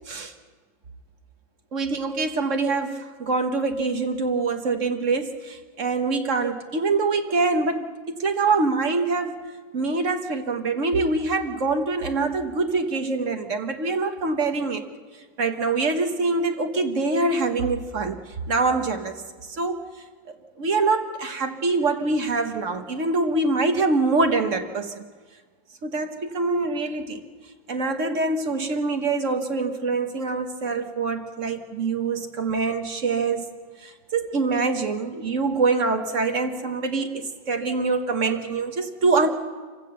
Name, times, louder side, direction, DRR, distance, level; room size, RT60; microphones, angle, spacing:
voice 1, 1.7-9.5 9.7-14.8 15.4-18.2 18.5-19.1 19.4-19.8 20.3-25.0 25.8-27.2 27.7-33.4 33.8-39.3, right 3 dB, 50° right, 6 dB, 1.4 m, -24 dB
26.0 x 16.0 x 6.8 m, 1.5 s
omnidirectional pair, 2.0 m